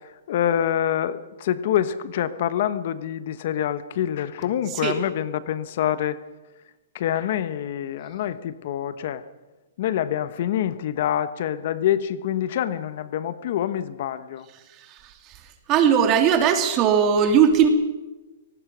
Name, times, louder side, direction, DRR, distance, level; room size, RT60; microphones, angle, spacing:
voice 1, 0.3-6.2 6.9-9.2 9.8-14.5, left 10 dB, 55° left, 13 dB, 1.1 m, -26 dB
voice 2, 15.7-17.7, right 8 dB, 30° right, 6 dB, 2.8 m, -18 dB
24.5 x 18.5 x 6.2 m, 1.1 s
hypercardioid pair, 155°, 0 cm